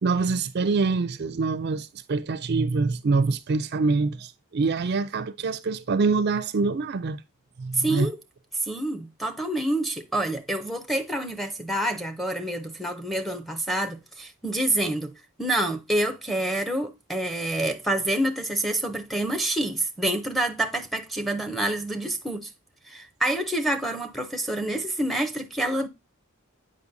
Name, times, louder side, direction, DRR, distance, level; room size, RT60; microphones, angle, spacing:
voice 1, 0.0-7.2 7.6-8.1, right 4 dB, 50° right, 0.4 m, -25 dB
voice 2, 7.7-8.2 8.6-22.5 22.9-25.9, right 1 dB, ahead, 0.6 m, -27 dB
8.3 x 5.2 x 2.6 m
head